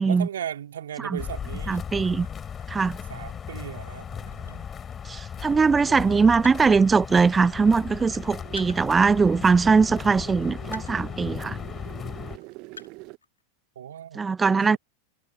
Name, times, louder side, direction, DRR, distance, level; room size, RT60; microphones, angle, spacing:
voice 1, 0.0-1.8 3.1-4.7 5.4-5.5 5.9-6.2 13.7-14.8, right 10 dB, 65° right, 3.1 m, -37 dB
sound 1, 1.2-12.4, left 7 dB, 20° left, 4.3 m, -36 dB
sound 2, 1.7-5.7 6.0-6.9 7.5-7.6 7.8-9.6 10.2-11.2 11.5-11.6 12.2-13.4, left 4 dB, 75° left, 2.0 m, -49 dB
voice 2, 1.7-2.3 2.7-3.0 5.1-11.6 14.2-14.8, right 5 dB, 15° right, 0.5 m, -21 dB
sound 3, 7.4-13.2, right 26 dB, 40° right, 1.3 m, -45 dB
figure-of-eight pair, 90°, 0 cm